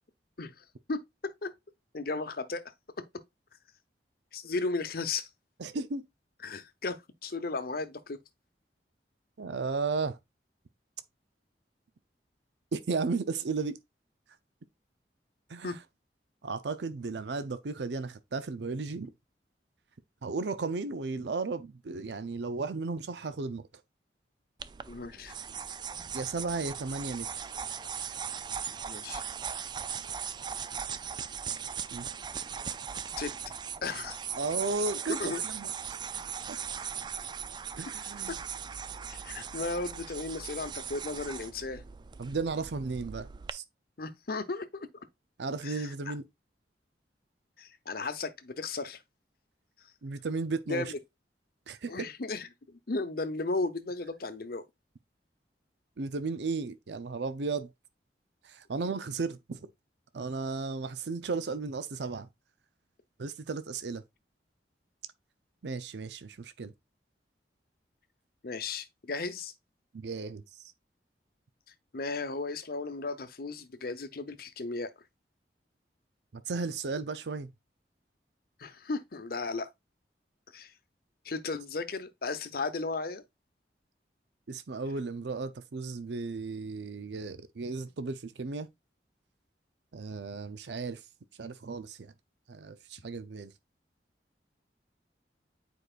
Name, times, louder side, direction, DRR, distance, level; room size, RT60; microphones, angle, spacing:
voice 1, 0.4-1.0 1.4-1.5 1.9-2.6 4.3-5.3 6.4-7.0 7.2-8.2 15.6-15.7 24.9-25.3 28.9-29.2 33.2-33.3 33.8-34.2 35.2-35.4 39.1-41.8 44.0-45.1 45.6-46.1 47.6-49.0 49.8-49.9 50.7-51.0 51.9-54.6 68.4-69.5 71.9-74.9 78.6-79.7 80.5-80.7 81.2-83.2, left 3 dB, 55° left, 0.8 m, -35 dB
voice 2, 5.6-6.0 9.4-10.2 12.7-13.8 15.5-15.8 16.4-19.1 20.2-23.7 26.1-27.5 31.9-32.1 34.3-36.0 36.5-36.6 37.8-38.4 42.2-43.6 45.4-46.2 50.0-50.9 51.7-52.1 56.0-57.7 58.4-59.7 60.1-62.3 63.2-64.0 65.6-66.7 69.9-70.7 76.3-77.5 84.5-88.7 89.9-91.1 91.4-92.1 92.5-93.5, right 4 dB, 75° right, 0.6 m, -35 dB
sound 1, 24.6-43.5, right 7 dB, 25° right, 0.3 m, -39 dB
9.0 x 4.8 x 2.4 m
head